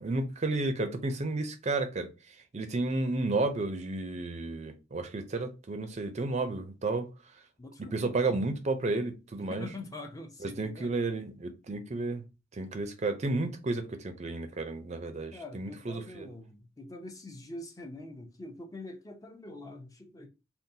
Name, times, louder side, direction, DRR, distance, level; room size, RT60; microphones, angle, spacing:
voice 1, 0.0-2.1 2.5-7.1 7.9-9.7 10.4-12.2 12.6-16.3, right 2 dB, 35° right, 0.5 m, -32 dB
voice 2, 7.6-8.0 9.4-10.9 15.3-20.3, left 2 dB, 20° left, 0.5 m, -44 dB
3.8 x 2.3 x 2.7 m
head